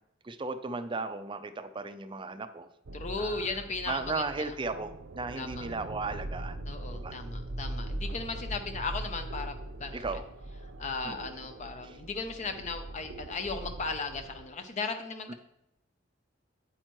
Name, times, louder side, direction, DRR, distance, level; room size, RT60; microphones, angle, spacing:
voice 1, 0.2-2.7 3.2-3.5 3.9-6.6 6.9-7.1 9.9-10.3 11.0-11.3 11.8-12.0 15.3-15.4, right 3 dB, 25° right, 10 dB, 0.5 m, -36 dB
voice 2, 2.9-4.5 5.4-5.7 6.6-10.0 10.8-15.3, left 4 dB, 35° left, 7 dB, 0.5 m, -36 dB
sound 1, 2.9-14.5, right 1 dB, 75° right, 0.6 m, -41 dB
9.0 x 8.8 x 3.0 m, 0.81 s
head